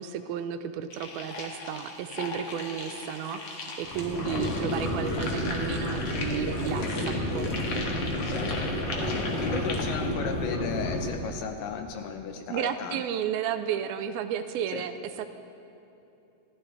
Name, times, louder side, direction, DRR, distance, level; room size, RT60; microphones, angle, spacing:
voice 1, 0.0-7.5 9.5-9.7 12.5-15.3, right 9 dB, 80° right, 9 dB, 2.5 m, -33 dB
sound 1, 0.9-10.0, left 3 dB, 55° left, 2.1 m, -38 dB
sound 2, 3.8-11.1, left 1 dB, 20° left, 2.2 m, -31 dB
voice 2, 8.2-8.8 9.1-13.0 14.7-14.9, left 7 dB, 75° left, 6 dB, 2.1 m, -35 dB
25.0 x 15.0 x 3.4 m, 2.9 s
omnidirectional pair, 4.4 m